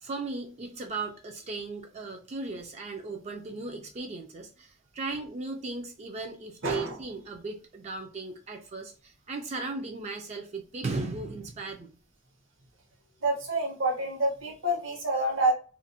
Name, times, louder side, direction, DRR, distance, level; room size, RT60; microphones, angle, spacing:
voice 1, 0.0-11.9, right 3 dB, 35° right, 3 dB, 0.3 m, -37 dB
voice 2, 6.6-7.0 13.2-15.5, right 1 dB, 75° right, 1 dB, 0.8 m, -27 dB
2.4 x 2.0 x 2.6 m, 0.38 s
head